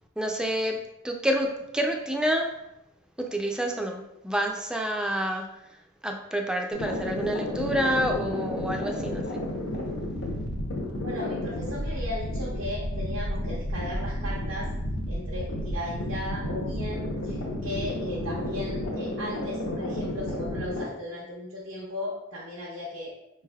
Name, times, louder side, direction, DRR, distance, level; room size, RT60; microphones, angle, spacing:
voice 1, 0.2-2.5 3.2-5.5 6.0-9.4, equal, 5° right, 2 dB, 0.3 m, -28 dB
sound 1, 6.7-20.8, left 1 dB, 85° left, 0.8 m, -32 dB
voice 2, 11.0-14.7 15.1-23.1, left 1 dB, 75° right, -6 dB, 0.8 m, -36 dB
4.9 x 3.2 x 2.3 m, 0.87 s
head